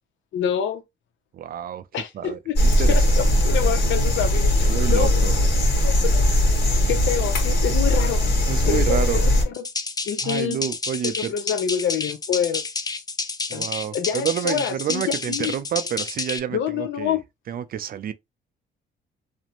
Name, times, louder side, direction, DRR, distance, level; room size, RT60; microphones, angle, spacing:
voice 1, 0.3-0.8 1.9-2.6 2.9-5.1 5.8-6.3 6.9-8.2 8.7-9.6 10.1-10.6 11.0-12.6 13.5-13.7 13.9-15.0 15.3-15.5 16.5-17.2, left 8 dB, 75° left, 0.6 m, -27 dB
voice 2, 1.3-1.8 2.1-3.2 4.7-5.3 8.5-9.2 10.2-11.3 13.5-17.2 17.5-18.1, right 9 dB, 50° right, 0.4 m, -29 dB
sound 1, 2.5-9.4, left 1 dB, 55° left, 1.3 m, -19 dB
sound 2, 9.5-16.4, left 4 dB, 20° left, 0.4 m, -30 dB
2.5 x 2.1 x 2.9 m
cardioid pair, 90°, 20 cm